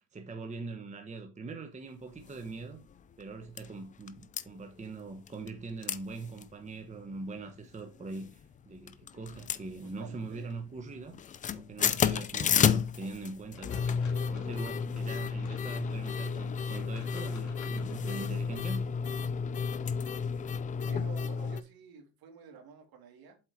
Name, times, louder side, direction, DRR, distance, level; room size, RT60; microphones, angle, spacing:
voice 1, 0.0-2.8 3.2-11.1 11.5-18.8, right 3 dB, 15° right, 1.0 m, -42 dB
sound 1, 2.3-2.4 2.9-3.0 3.2-3.7 4.1-4.4 5.3-5.6 5.8-6.0 6.3-6.4 6.9-7.3 8.0-8.5 8.9-10.2 10.5-10.8 11.1-21.6, left 6 dB, 20° left, 0.3 m, -31 dB
voice 2, 9.8-10.5 20.8-23.4, right 6 dB, 50° right, 2.3 m, -50 dB
sound 2, 13.5-18.5, left 5 dB, 40° left, 2.5 m, -53 dB
7.7 x 4.4 x 4.6 m
supercardioid pair, 110°, 45 cm